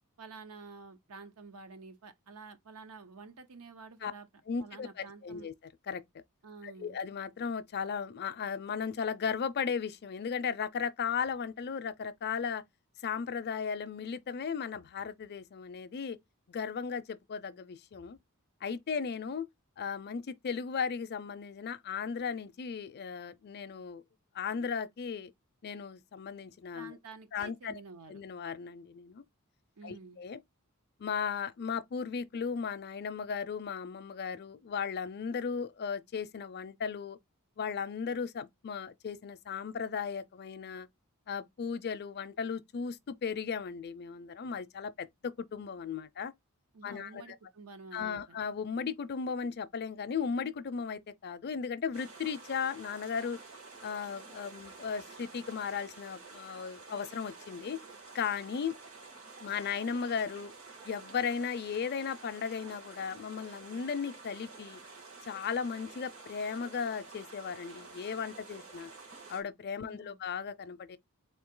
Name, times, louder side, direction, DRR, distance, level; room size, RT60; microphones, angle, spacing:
voice 1, 0.2-4.3 4.6-5.5 6.4-7.0 26.7-28.2 29.8-30.2 46.7-48.4 69.8-70.2, right 4 dB, 90° right, 0.8 m, -50 dB
voice 2, 4.5-5.5 5.9-6.0 6.6-12.6 13.0-16.2 16.5-18.2 18.6-19.5 19.8-24.0 24.3-25.3 25.6-27.0 27.3-27.8 28.1-29.2 29.8-30.4 31.0-37.2 37.6-40.9 41.3-46.3 46.8-47.4 47.9-53.4 53.8-57.8 58.1-58.7 59.4-60.5 60.8-64.8 65.3-68.9 69.3-71.0, left 6 dB, 50° left, 0.4 m, -36 dB
sound 1, 51.9-69.4, right 3 dB, 65° right, 1.7 m, -50 dB
3.9 x 2.8 x 3.7 m
head